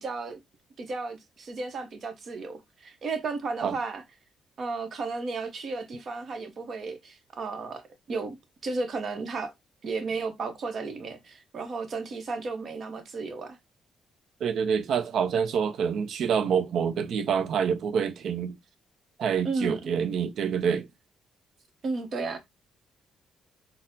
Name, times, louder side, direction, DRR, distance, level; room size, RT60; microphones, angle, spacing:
voice 1, 0.0-0.4 0.8-4.0 4.6-8.4 8.6-9.5 9.8-13.6 19.4-19.9 21.8-22.4, right 3 dB, 50° right, 0.9 m, -33 dB
voice 2, 14.4-18.6 19.2-20.9, right 7 dB, 70° right, 0.5 m, -27 dB
3.9 x 2.0 x 2.6 m
cardioid pair, 90°, 0 cm